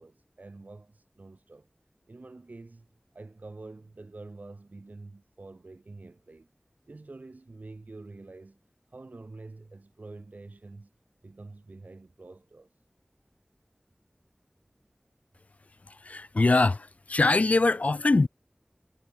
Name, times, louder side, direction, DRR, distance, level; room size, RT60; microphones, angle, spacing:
voice 1, 0.0-1.7 2.1-2.9 3.1-6.5 6.9-8.6 8.9-10.9 11.2-12.7, right 3 dB, 80° right, 1.5 m, -47 dB
voice 2, 16.1-18.3, left 3 dB, 60° left, 0.3 m, -23 dB
wide cardioid pair, 50°, 3 cm